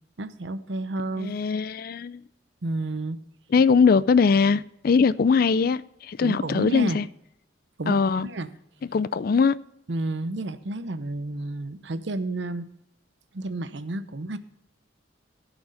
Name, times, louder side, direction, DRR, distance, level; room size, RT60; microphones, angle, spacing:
voice 1, 0.2-1.3 2.6-3.2 6.2-7.0 7.8-8.0 8.2-8.5 9.9-12.7 13.3-14.4, right 2 dB, 65° right, 0.8 m, -31 dB
voice 2, 1.2-2.2 3.5-7.1 7.9-8.3 8.9-9.6, left 5 dB, 50° left, 0.4 m, -21 dB
16.0 x 6.1 x 5.0 m
head